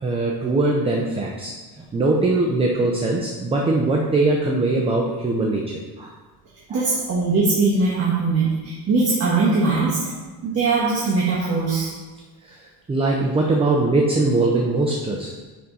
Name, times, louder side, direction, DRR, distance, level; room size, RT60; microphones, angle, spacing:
voice 1, 0.0-6.1 6.7-6.9 12.4-15.3, right 2 dB, 15° right, 0 dB, 0.5 m, -22 dB
voice 2, 6.7-10.0 10.4-11.9, right 3 dB, 35° right, -7 dB, 1.5 m, -21 dB
10.0 x 3.8 x 4.1 m, 1.3 s
cardioid pair, 160°, 40 cm